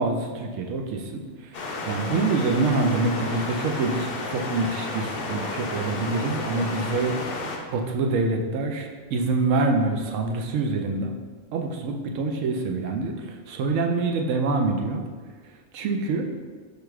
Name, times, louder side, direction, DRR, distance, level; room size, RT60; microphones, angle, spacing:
voice 1, 0.0-7.2 7.7-11.1 11.5-15.0 15.7-16.3, right 3 dB, 85° right, 3 dB, 0.9 m, -26 dB
sound 1, 1.5-7.6, left 2 dB, 60° left, 0.7 m, -32 dB
4.9 x 2.3 x 4.6 m, 1.5 s
omnidirectional pair, 1.3 m